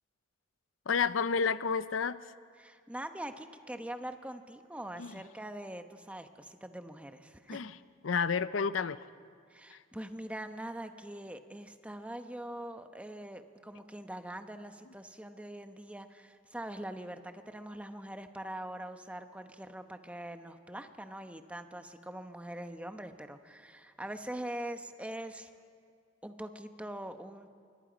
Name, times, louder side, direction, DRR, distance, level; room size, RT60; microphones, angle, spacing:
voice 1, 0.9-2.2 5.0-5.1 7.5-7.7 8.0-9.0 9.7-9.8, left 6 dB, 85° left, 15 dB, 0.6 m, -30 dB
voice 2, 2.6-7.6 9.5-25.5 26.2-27.5, right 1 dB, 5° right, 7 dB, 0.9 m, -43 dB
27.5 x 24.0 x 5.2 m, 2.2 s
head